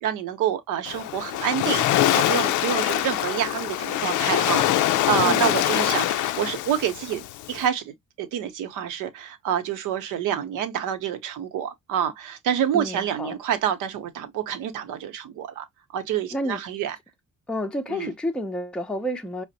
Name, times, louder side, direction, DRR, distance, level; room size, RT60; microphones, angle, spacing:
voice 1, 0.0-15.6 15.9-17.0 17.9-18.1, right 9 dB, 90° right, 0.8 m, -28 dB
Waves surf, 0.9-7.7, left 13 dB, 80° left, 0.5 m, -24 dB
voice 2, 5.2-5.5 12.7-13.3 16.3-16.6 17.5-19.4, equal, 5° left, 0.5 m, -30 dB
4.9 x 2.0 x 2.6 m
cardioid pair, 90°, 30 cm